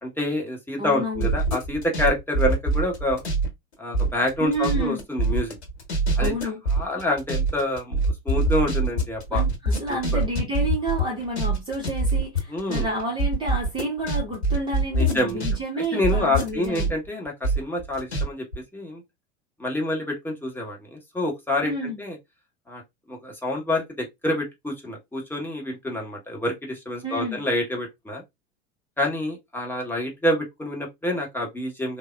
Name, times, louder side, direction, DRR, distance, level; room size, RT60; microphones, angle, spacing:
voice 1, 0.0-3.2 3.8-5.6 6.2-6.3 6.7-9.4 9.9-10.2 12.5-12.9 14.9-15.4 15.9-19.0 19.6-22.2 22.7-22.8 23.1-28.2 29.0-32.0, left 1 dB, 5° left, 0.9 m, -27 dB
voice 2, 0.8-1.3 4.4-5.0 6.2-6.6 9.3-16.9 21.6-22.0 27.0-27.4, right 1 dB, 15° right, 0.7 m, -30 dB
sound 1, 1.1-3.5 3.7-15.5 15.8-18.2 18.5-18.6, right 2 dB, 80° left, 1.0 m, -24 dB
3.4 x 2.0 x 2.3 m
figure-of-eight pair, 80°, 33 cm